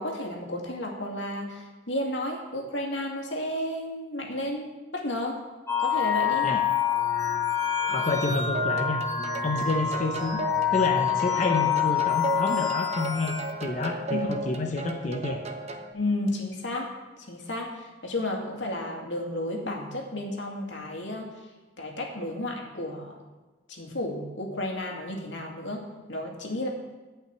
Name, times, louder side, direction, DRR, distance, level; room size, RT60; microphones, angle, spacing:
voice 1, 0.0-5.4 5.8-6.5 14.1-14.3 15.9-16.9 17.3-21.4 21.8-23.2 23.7-26.7, left 1 dB, 90° left, 0 dB, 2.2 m, -32 dB
sound 1, 5.7-13.6, left 8 dB, 15° left, 1.6 m, -27 dB
voice 2, 7.9-9.0 9.4-10.4 10.7-13.3 13.6-15.4, left 2 dB, 40° left, 2 dB, 0.8 m, -28 dB
sound 2, 8.5-15.9, right 3 dB, 35° right, 0.9 m, -36 dB
11.0 x 5.7 x 8.5 m, 1.2 s
head